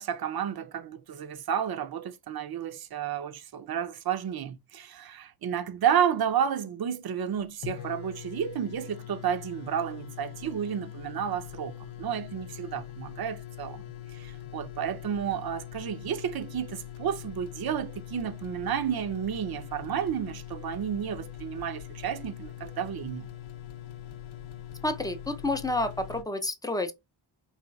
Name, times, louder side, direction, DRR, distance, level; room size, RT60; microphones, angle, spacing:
voice 1, 0.0-13.8 14.1-23.3, right 8 dB, 50° right, 0.5 m, -31 dB
sound 1, 7.3-7.4 7.6-26.2, left 11 dB, 80° left, 0.6 m, -43 dB
voice 2, 24.8-26.9, left 2 dB, 10° left, 0.4 m, -29 dB
4.1 x 2.4 x 2.2 m
cardioid pair, 80°, 48 cm